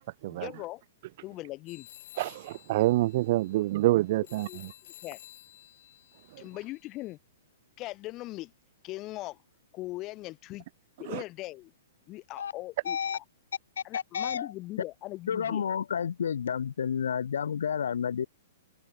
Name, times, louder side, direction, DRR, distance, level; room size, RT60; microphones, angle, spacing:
voice 1, 0.3-0.8 1.2-1.9 4.5-4.6 5.0-5.2 6.4-7.2 7.8-8.5 8.8-9.4 9.7-10.6 11.0-11.7 12.1-13.2 13.8-15.6, left 18 dB, 25° left, 2.0 m, -40 dB
sound 1, 1.7-7.1, left 13 dB, 50° left, 4.2 m, -53 dB
voice 2, 2.2-4.7 11.1-11.2, right 17 dB, 45° right, 1.2 m, -27 dB
voice 3, 12.8-13.2 13.8-14.5 15.3-18.3, left 7 dB, 85° left, 1.1 m, -30 dB
hypercardioid pair, 165°, 0 cm